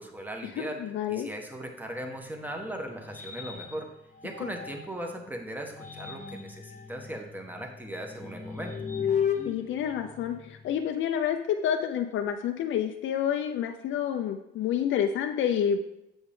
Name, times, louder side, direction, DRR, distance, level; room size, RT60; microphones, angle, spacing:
voice 1, 0.0-0.8 1.1-3.9 4.2-8.7, right 1 dB, 10° right, 2 dB, 1.5 m, -38 dB
voice 2, 0.6-1.3 9.5-15.8, left 9 dB, 75° left, 5 dB, 0.6 m, -29 dB
sound 1, 1.9-5.1 5.6-10.8, left 7 dB, 35° left, 1.2 m, -36 dB
8.0 x 7.2 x 3.7 m, 0.87 s
cardioid pair, 90°, 20 cm